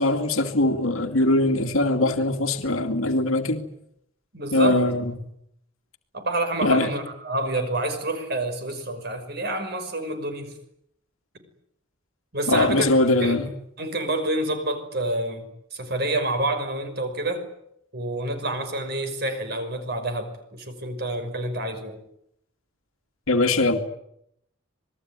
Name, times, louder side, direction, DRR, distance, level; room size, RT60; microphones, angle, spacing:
voice 1, 0.0-3.6 4.5-5.1 6.6-6.9 12.5-13.5 23.3-23.8, left 2 dB, 90° left, 5 dB, 2.4 m, -21 dB
voice 2, 4.3-4.9 6.1-10.5 12.3-12.9 13.2-13.3 13.8-17.5 17.9-22.0, right 2 dB, 50° right, 8 dB, 5.7 m, -28 dB
26.5 x 21.0 x 9.7 m, 0.75 s
head